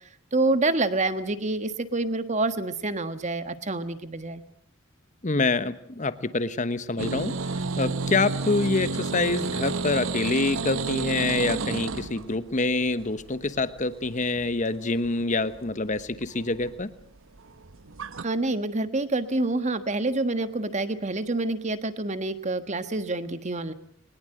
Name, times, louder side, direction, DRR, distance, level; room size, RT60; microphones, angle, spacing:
voice 1, 0.3-4.4 18.2-23.7, right 2 dB, 35° right, 11 dB, 1.5 m, -27 dB
voice 2, 5.2-16.9, left 3 dB, 40° left, 13 dB, 1.2 m, -26 dB
sound 1, 7.0-18.2, right 4 dB, 75° right, 0.9 m, -31 dB
22.0 x 20.5 x 7.8 m, 0.65 s
head